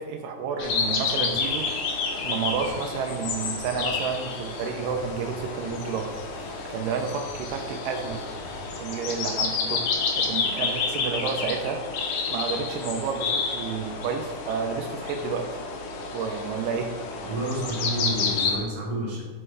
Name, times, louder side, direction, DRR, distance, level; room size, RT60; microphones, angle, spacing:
voice 1, 0.0-1.8 2.2-6.1 6.7-8.2 8.8-9.8 10.2-15.4 16.1-16.9, right 6 dB, 90° right, 5 dB, 2.2 m, -30 dB
sound 1, 0.6-18.6, left 4 dB, 75° left, 2.1 m, -30 dB
sound 2, 1.1-8.7, left 2 dB, 35° left, 1.0 m, -48 dB
voice 2, 17.2-19.2, right 1 dB, 55° right, -4 dB, 1.8 m, -29 dB
5.5 x 5.3 x 3.2 m, 1.3 s
omnidirectional pair, 3.7 m